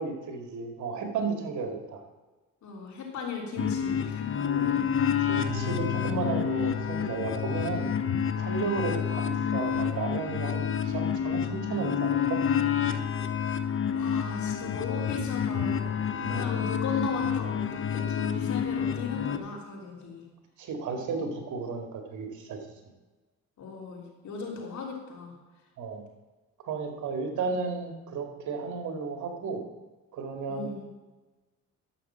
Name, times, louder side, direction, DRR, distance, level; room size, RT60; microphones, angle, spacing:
voice 1, 0.0-2.0 4.4-4.8 5.2-7.9 8.4-12.4 16.2-16.6 20.6-22.6 25.8-26.0 26.6-29.6 30.1-30.7, right 4 dB, 75° right, 4 dB, 2.3 m, -33 dB
voice 2, 2.6-4.4 13.9-16.0 16.3-20.2 23.6-25.4 30.5-30.9, left 4 dB, 70° left, -1 dB, 3.4 m, -37 dB
sound 1, 3.6-19.4, left 8 dB, 45° left, 1.0 m, -29 dB
sound 2, 5.5-9.5, left 5 dB, 60° right, 3.0 m, -39 dB
11.5 x 6.7 x 7.4 m, 1.2 s
cardioid pair, 90°, 30 cm